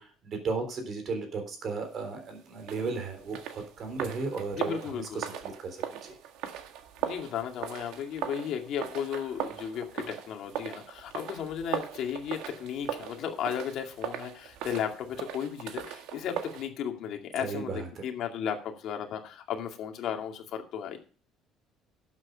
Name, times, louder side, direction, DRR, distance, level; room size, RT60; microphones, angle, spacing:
voice 1, 0.0-6.2 17.4-18.1, right 4 dB, 40° right, 6 dB, 3.6 m, -35 dB
sound 1, 2.6-16.7, right 10 dB, 75° right, 1.6 m, -39 dB
voice 2, 4.5-5.3 7.0-21.0, left 8 dB, 55° left, 4 dB, 2.2 m, -35 dB
12.0 x 7.8 x 5.2 m, 0.39 s
cardioid pair, 160°, 0 cm